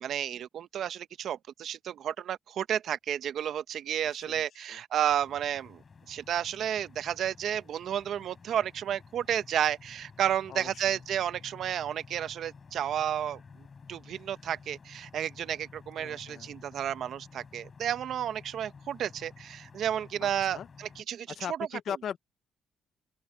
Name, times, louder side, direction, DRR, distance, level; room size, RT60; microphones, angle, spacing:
voice 1, 0.0-5.8 6.1-21.3, right 10 dB, 70° right, 0.9 m, -32 dB
voice 2, 4.3-4.8 10.5-10.8 16.0-16.5 20.2-20.7 21.3-22.2, left 8 dB, 65° left, 0.8 m, -39 dB
sound 1, 5.1-21.0, left 5 dB, 35° left, 7.3 m, -53 dB
open air
cardioid pair, 90°, 0 cm